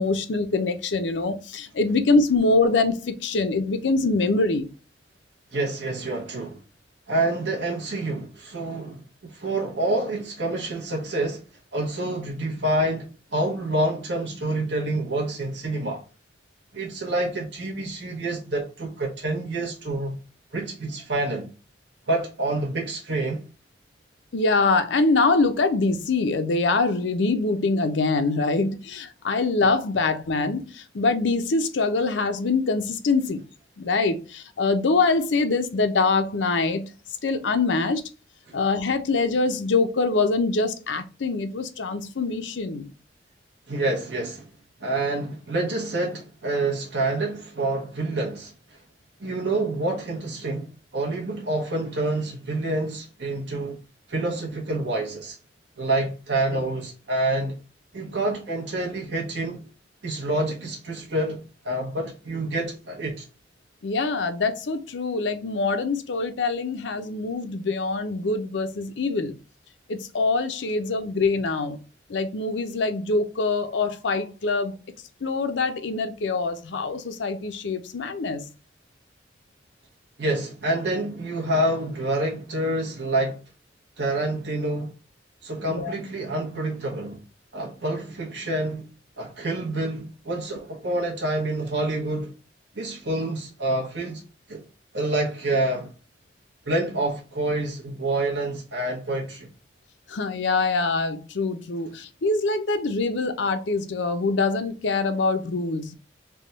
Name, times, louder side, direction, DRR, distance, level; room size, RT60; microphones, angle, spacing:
voice 1, 0.0-4.7 24.3-33.4 33.8-36.9 37.2-38.0 38.5-42.9 56.5-56.6 63.8-69.4 69.9-71.8 72.1-74.7 75.2-78.4 85.7-85.9 100.1-105.9, left 3 dB, 85° left, 0.6 m, -24 dB
voice 2, 5.5-6.6 7.1-11.4 11.7-16.0 16.7-20.2 20.5-21.5 22.1-23.4 43.7-44.5 44.8-48.8 49.2-53.8 54.1-55.4 55.8-57.5 57.9-59.6 60.0-63.2 80.2-83.4 84.0-84.9 85.4-87.2 87.5-88.8 89.2-92.3 92.7-94.2 94.5-94.6 94.9-95.9 96.7-99.5, right 2 dB, 75° right, 1.0 m, -27 dB
3.4 x 2.2 x 4.0 m
head